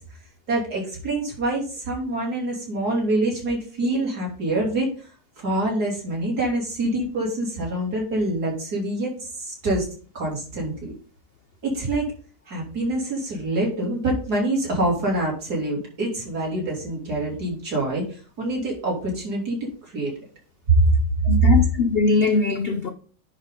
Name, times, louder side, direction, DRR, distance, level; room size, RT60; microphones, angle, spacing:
voice 1, 0.5-5.1 5.4-9.9 10.1-10.9 11.6-12.1 12.5-20.1 20.7-20.8 21.4-21.5, right 2 dB, 60° right, 3.7 m, -25 dB
voice 2, 21.2-22.9, left 4 dB, 55° left, 0.6 m, -21 dB
10.0 x 5.2 x 3.8 m
omnidirectional pair, 1.9 m